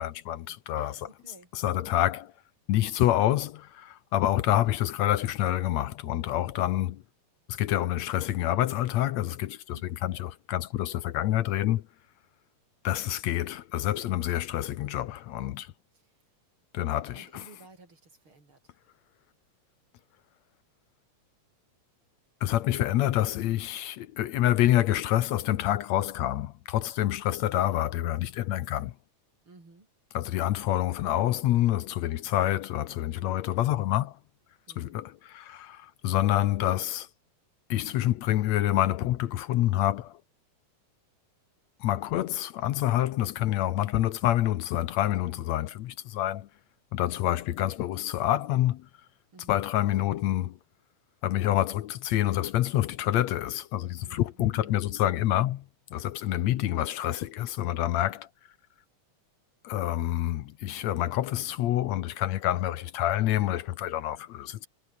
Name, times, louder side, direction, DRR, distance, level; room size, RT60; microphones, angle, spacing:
voice 1, 0.0-0.9 1.5-2.3 2.7-7.0 7.5-11.8 12.8-15.7 16.7-17.4 22.4-28.9 30.1-34.2 34.8-37.1 37.7-40.2 41.8-46.5 46.9-48.9 49.5-50.6 51.2-55.7 55.9-58.3 59.6-64.7, left 13 dB, 70° left, 2.0 m, -27 dB
voice 2, 0.7-2.0 4.5-4.8 9.7-9.9 15.9-16.2 17.1-18.7 29.5-29.9 34.7-35.0 49.3-49.5 54.0-54.8 56.3-56.5, right 3 dB, 40° right, 7.1 m, -55 dB
omnidirectional pair, 3.5 m